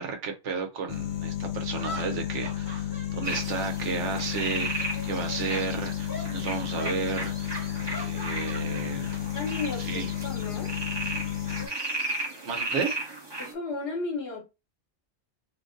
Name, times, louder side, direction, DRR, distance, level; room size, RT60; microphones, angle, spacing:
voice 1, 0.0-9.1 9.8-10.1 12.4-13.0, right 5 dB, 85° right, 1.1 m, -33 dB
sound 1, 0.9-11.7, left 11 dB, 85° left, 1.0 m, -32 dB
sound 2, 0.9-1.0 1.7-4.4 4.7-5.6 6.1-6.3 6.7-7.0 7.5-9.2 9.5-9.8 11.0-12.4, left 1 dB, 20° left, 0.8 m, -42 dB
sound 3, 3.2-13.5, right 2 dB, 25° right, 0.8 m, -36 dB
voice 2, 9.3-10.7 13.4-14.4, left 3 dB, 60° left, 1.1 m, -34 dB
2.8 x 2.6 x 3.7 m
omnidirectional pair, 1.2 m